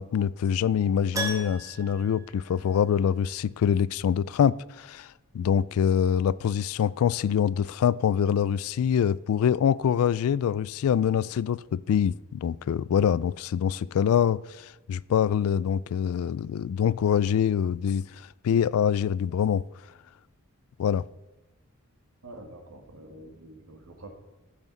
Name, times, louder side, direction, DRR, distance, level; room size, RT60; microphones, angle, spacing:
voice 1, 0.0-5.1 5.3-18.1 18.4-19.6 20.8-21.0, left 8 dB, 75° left, 0.3 m, -25 dB
Keyboard (musical), 1.1-3.2 3.4-3.5 6.3-6.4 6.6-6.7, right 1 dB, 15° right, 1.2 m, -36 dB
voice 2, 22.2-24.1, right 1 dB, 70° right, 1.8 m, -46 dB
14.5 x 6.0 x 4.0 m
head